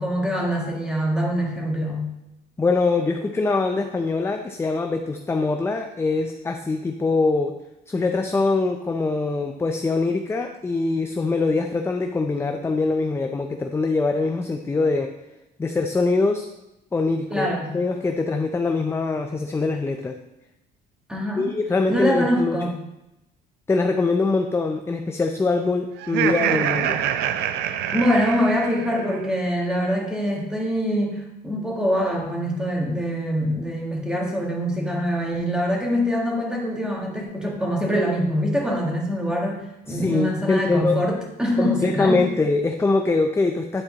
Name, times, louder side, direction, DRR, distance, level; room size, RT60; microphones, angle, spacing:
voice 1, 0.0-2.1 17.3-17.7 21.1-21.5 21.9-22.7 27.9-42.3, equal, 5° right, -2 dB, 1.9 m, -24 dB
voice 2, 2.6-7.6 7.9-15.1 15.6-16.5 16.9-17.5 17.7-20.2 21.4-22.6 23.7-27.0 39.9-41.0 41.6-43.8, left 3 dB, 15° left, 5 dB, 0.5 m, -23 dB
Laughter, 26.0-29.2, right 10 dB, 80° right, 0.5 m, -25 dB
9.7 x 4.4 x 3.9 m, 0.92 s
cardioid pair, 110°, 17 cm